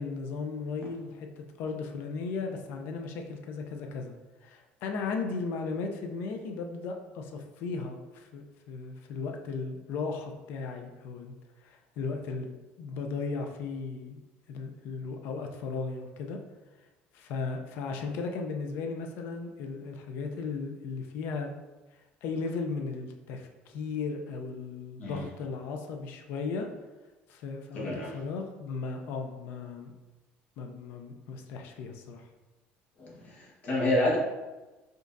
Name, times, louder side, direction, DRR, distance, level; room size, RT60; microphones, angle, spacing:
voice 1, 0.0-4.1 4.4-11.3 11.6-14.2 14.5-16.4 17.1-21.5 22.2-26.7 27.3-29.9 30.6-32.3, left 4 dB, 60° left, 4 dB, 0.5 m, -36 dB
voice 2, 25.0-25.3 27.7-28.2 33.0-34.2, left 1 dB, 40° left, -3 dB, 1.2 m, -29 dB
5.1 x 3.7 x 2.6 m, 1.1 s
cardioid pair, 175°, 4 cm